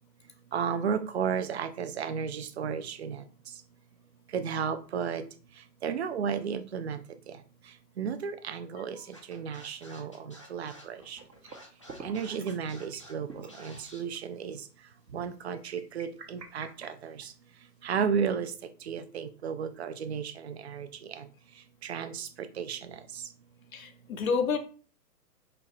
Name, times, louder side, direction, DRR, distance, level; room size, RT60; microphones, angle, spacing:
voice 1, 0.5-3.2 4.3-5.2 5.8-7.0 8.0-9.0 9.3-10.1 10.5-11.2 12.0-14.6 15.1-17.1 17.8-18.5 18.9-20.9 21.2-21.3 21.8-22.3 22.6-22.8, right 7 dB, 45° right, 10 dB, 0.4 m, -33 dB
Scratching (performance technique), 9.1-14.0, equal, 20° left, 0.4 m, -51 dB
sound 1, 10.7-11.6 11.9-12.6 12.9-13.0 13.3-13.6 14.1-14.2 15.5-17.6, right 4 dB, 85° right, 1.0 m, -47 dB
voice 2, 23.7-24.6, left 5 dB, 55° left, 7 dB, 0.7 m, -29 dB
4.4 x 2.9 x 3.8 m, 0.39 s
figure-of-eight pair, 130°, 49 cm